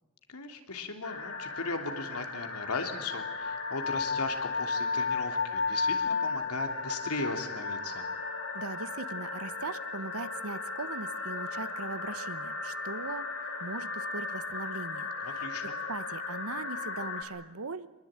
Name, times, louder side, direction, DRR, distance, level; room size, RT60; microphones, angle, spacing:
voice 1, 0.3-8.1 15.2-15.8, left 3 dB, 85° left, 6 dB, 3.1 m, -37 dB
sound 1, 1.0-17.2, left 4 dB, 65° left, 4.1 m, -35 dB
voice 2, 8.5-15.4 15.9-17.9, right 3 dB, 75° right, 14 dB, 1.2 m, -40 dB
25.0 x 21.5 x 9.0 m, 1.1 s
head